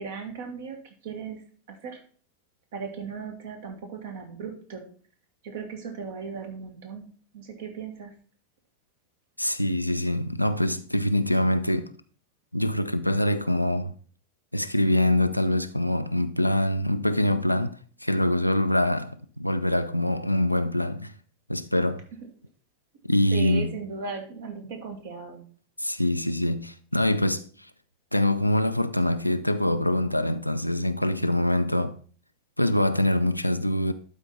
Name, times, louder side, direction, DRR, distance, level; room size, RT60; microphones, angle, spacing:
voice 1, 0.0-1.4 1.7-2.0 2.7-4.8 5.4-7.1 7.3-8.1 23.3-25.4, right 5 dB, 55° right, 1.9 m, -37 dB
voice 2, 9.4-11.9 12.5-13.9 14.5-19.1 19.4-21.1 21.5-22.0 23.1-23.7 25.8-27.5 28.1-32.0 32.6-33.9, left 1 dB, 90° left, 0.4 m, -24 dB
11.5 x 4.4 x 4.0 m
figure-of-eight pair, 90°, 0 cm